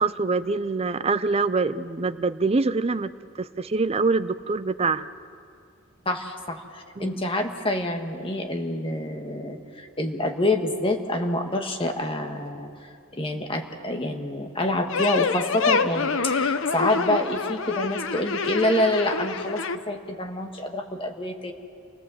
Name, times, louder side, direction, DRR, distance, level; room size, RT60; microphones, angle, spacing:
voice 1, 0.0-3.1 3.4-5.1 7.0-7.2, right 4 dB, 30° right, 13 dB, 0.5 m, -25 dB
voice 2, 6.0-12.7 13.1-21.5, left 1 dB, 25° left, 4 dB, 1.7 m, -27 dB
sound 1, 14.9-19.8, left 4 dB, 65° left, 0.8 m, -26 dB
28.5 x 17.5 x 7.7 m, 2.3 s
head